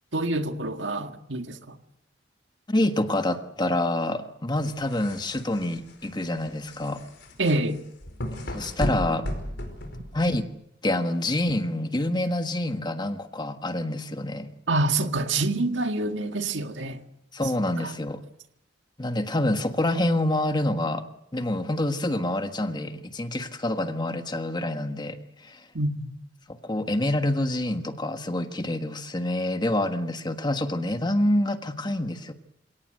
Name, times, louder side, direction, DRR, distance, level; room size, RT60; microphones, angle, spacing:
voice 1, 0.1-1.8 7.4-7.8 14.7-17.0 17.8-17.9 25.7-26.1, right 2 dB, 70° right, 1.8 m, -26 dB
voice 2, 2.7-7.0 8.5-9.3 10.1-10.5 10.8-14.5 17.3-18.2 19.0-21.0 21.3-25.6 26.6-32.3, left 1 dB, 25° left, 1.5 m, -27 dB
sound 1, 4.6-10.5, equal, 65° left, 5.2 m, -35 dB
28.5 x 18.0 x 7.9 m
head